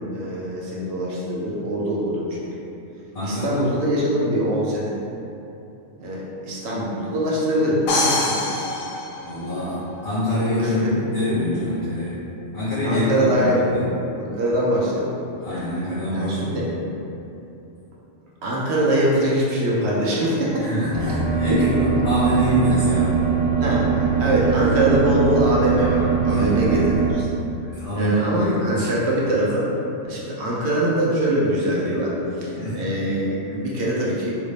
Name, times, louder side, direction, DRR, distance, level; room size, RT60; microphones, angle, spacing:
voice 1, 0.1-2.7 3.2-5.0 6.0-8.7 10.6-10.9 12.8-13.9 14.2-15.1 16.1-16.7 18.4-20.6 21.0-21.1 21.5-21.6 23.6-27.3 28.0-29.7 30.0-34.3, right 1 dB, 65° right, -5 dB, 0.9 m, -23 dB
voice 2, 3.1-3.7 9.2-12.2 12.5-13.8 15.4-16.7 20.6-23.2 26.3-26.6 27.6-28.8 32.5-32.8, left 1 dB, 40° left, -13 dB, 0.6 m, -25 dB
sound 1, 7.9-9.8, left 2 dB, 85° left, 1.0 m, -24 dB
sound 2, 20.9-27.1, right 6 dB, 80° right, 1.2 m, -21 dB
3.2 x 2.6 x 3.2 m, 2.9 s
omnidirectional pair, 1.3 m